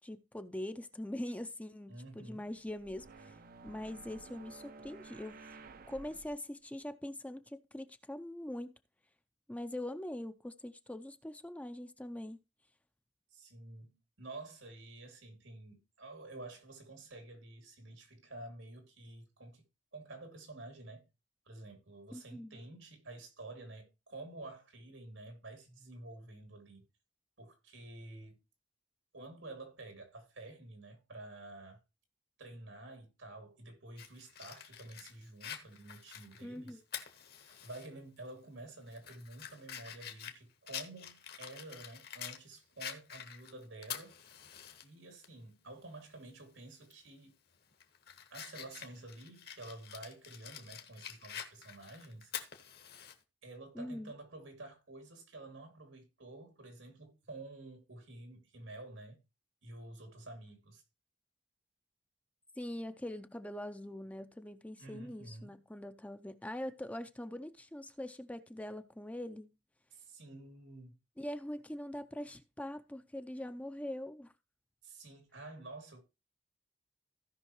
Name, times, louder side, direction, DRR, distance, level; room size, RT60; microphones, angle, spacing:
voice 1, 0.0-3.4 3.6-5.4 5.9-8.7 9.5-12.4 22.1-22.6 36.4-36.8 53.7-54.1 62.6-69.5 71.2-74.3, left 1 dB, 5° left, 0.5 m, -43 dB
voice 2, 1.9-2.5 13.3-19.6 19.9-21.1 21.5-26.8 27.4-28.4 29.1-31.8 32.4-36.8 37.4-44.2 44.8-47.4 48.3-52.3 53.4-59.2 59.6-60.8 64.8-65.6 69.9-71.0 74.8-76.0, right 2 dB, 90° right, 2.7 m, -50 dB
sound 1, 2.4-6.4, right 4 dB, 50° right, 0.5 m, -53 dB
Fire, 34.0-37.9 38.2-38.3 38.9-42.4 42.8-44.8 45.2-45.3 46.8-47.1 47.5-53.1, left 9 dB, 55° left, 1.2 m, -47 dB
16.0 x 5.6 x 3.0 m
head